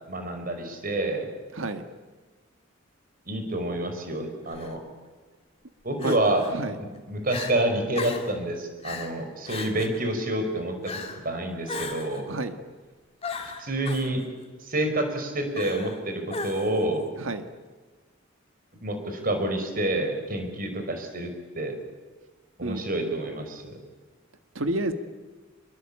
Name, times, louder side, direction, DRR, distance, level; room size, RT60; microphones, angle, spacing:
voice 1, 0.1-1.3 3.3-4.8 5.8-6.4 6.8-10.7 11.2-12.3 13.4-14.2 14.6-17.1 18.8-21.8 22.6-23.8, right 1 dB, 45° right, 6 dB, 5.2 m, -28 dB
voice 2, 1.5-1.8 6.0-6.2 6.5-6.8 12.3-12.6 17.2-17.5 22.6-23.1 24.6-24.9, right 2 dB, 80° right, 8 dB, 1.8 m, -30 dB
Crying sobbing, 4.5-4.7 6.0-6.5 6.9-7.0 7.3-7.5 7.9-8.3 8.8-9.1 9.5-10.0 10.8-11.2 11.7-12.2 13.2-14.1 15.5-16.0 16.3-16.8, left 4 dB, 30° left, 2.6 m, -36 dB
26.0 x 23.0 x 8.7 m, 1.3 s
head